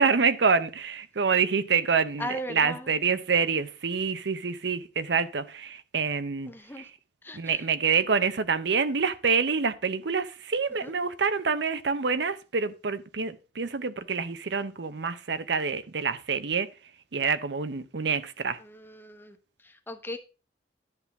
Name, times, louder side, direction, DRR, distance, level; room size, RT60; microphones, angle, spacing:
voice 1, 0.0-6.5 6.8-6.9 7.3-16.7 17.1-18.6, right 5 dB, 70° right, 0.7 m, -27 dB
voice 2, 2.2-2.9 6.5-6.9 7.2-7.6 10.8-10.9 18.6-19.4 19.6-20.2, equal, 10° left, 0.9 m, -38 dB
10.5 x 3.7 x 7.0 m
head